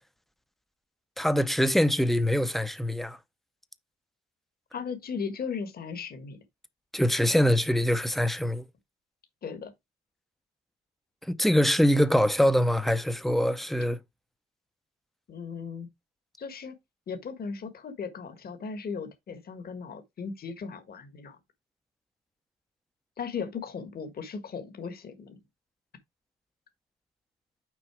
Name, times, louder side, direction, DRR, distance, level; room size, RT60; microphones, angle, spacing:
voice 1, 1.2-3.2 6.9-8.7 11.3-14.0, equal, ahead, 0.7 m, -24 dB
voice 2, 4.7-6.4 9.4-9.7 15.3-15.9 16.4-16.8 17.1-21.4 23.2-25.4, left 5 dB, 50° left, 1.5 m, -37 dB
6.2 x 4.2 x 4.8 m
cardioid pair, 90°, 20 cm